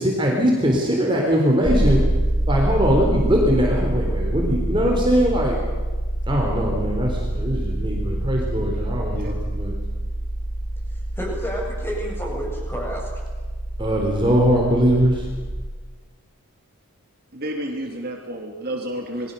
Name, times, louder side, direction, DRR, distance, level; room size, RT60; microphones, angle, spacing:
voice 1, 0.0-2.0 2.5-5.6 6.3-9.8 13.8-15.3, equal, 20° right, -1 dB, 3.9 m, -21 dB
sound 1, 1.6-15.5, right 1 dB, 5° right, 7.2 m, -26 dB
voice 2, 9.1-9.5 17.3-19.3, right 1 dB, 45° right, 1 dB, 2.8 m, -31 dB
voice 3, 10.9-13.1, equal, 10° left, -1 dB, 7.6 m, -30 dB
29.0 x 21.5 x 6.9 m, 1.4 s
head